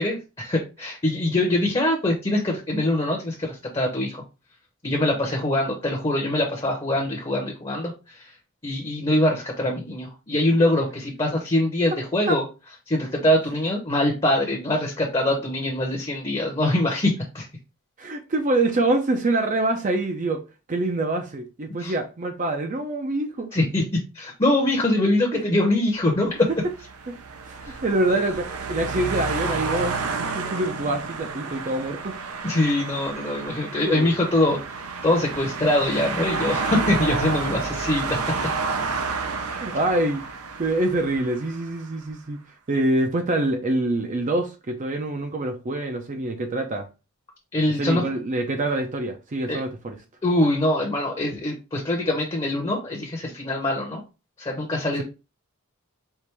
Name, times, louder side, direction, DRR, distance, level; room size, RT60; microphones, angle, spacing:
voice 1, 0.0-4.2 4.8-8.3 8.6-12.4 12.9-17.5 21.8-21.9 23.5-23.8 24.1-26.5 27.6-27.8 32.4-38.2 47.5-48.0 49.5-49.6 50.2-54.0 54.4-55.0, left 1 dB, 25° left, 0.8 m, -23 dB
voice 2, 18.0-20.4 20.7-23.6 27.1-27.2 27.5-32.2 33.8-34.1 39.4-40.2 40.6-42.4 42.7-46.9 47.8-50.0, right 2 dB, 35° right, 0.5 m, -25 dB
sound 1, 26.4-41.8, right 4 dB, 90° right, 0.7 m, -30 dB
4.5 x 2.5 x 3.3 m
head